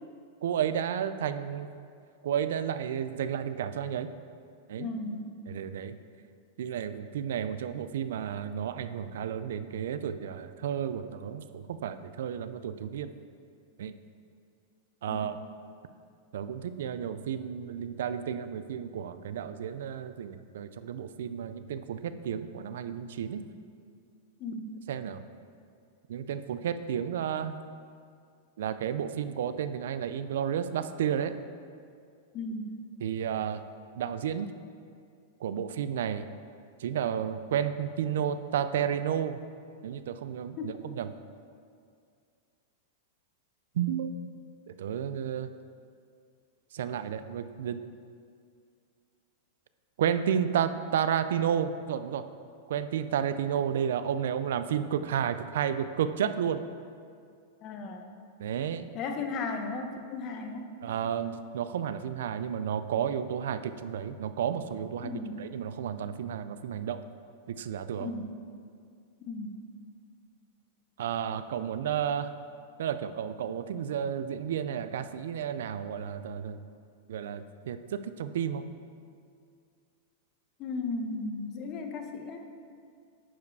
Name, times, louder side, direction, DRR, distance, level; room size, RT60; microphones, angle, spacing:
voice 1, 0.4-1.7 2.2-4.1 4.7-4.9 5.5-5.9 6.6-13.1 13.8-13.9 15.0-15.4 16.3-23.4 24.9-25.2 26.1-27.6 28.6-31.3 33.0-33.6 33.9-34.5 35.4-36.3 36.8-39.4 39.8-41.1 43.7-44.2 44.7-45.5 46.7-47.8 50.0-52.3 52.7-56.6 58.4-58.9 60.8-67.0 67.5-68.1 71.0-72.3 72.8-76.6 77.1-78.7, right 8 dB, 75° right, 11 dB, 0.4 m, -32 dB
voice 2, 4.8-5.4 15.1-15.2 23.4-23.6 24.4-24.7 32.3-32.8 40.6-40.7 57.6-58.0 58.9-60.7 65.0-65.4 68.0-68.3 69.3-69.6 80.6-82.5, left 3 dB, 40° left, 4 dB, 1.0 m, -35 dB
10.0 x 4.8 x 4.7 m, 2.3 s
hypercardioid pair, 130°, 0 cm